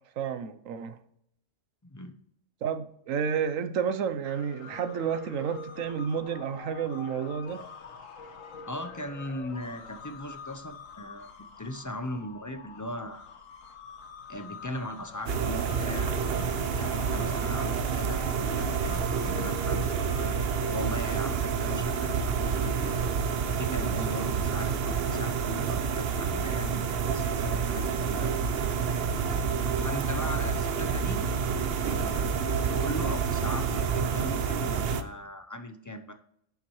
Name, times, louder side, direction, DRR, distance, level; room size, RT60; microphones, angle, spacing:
voice 1, 0.2-1.0 2.6-7.6, right 7 dB, 85° right, 1.1 m, -31 dB
voice 2, 1.8-2.2 8.7-13.3 14.3-16.1 16.7-19.9 20.7-23.0 23.5-28.3 29.2-31.3 31.8-36.1, left 1 dB, 25° left, 0.4 m, -39 dB
sound 1, 4.2-20.7, left 5 dB, 85° left, 1.4 m, -45 dB
sound 2, 15.3-35.0, right 6 dB, 55° right, 0.9 m, -28 dB
10.5 x 7.2 x 3.1 m
omnidirectional pair, 1.3 m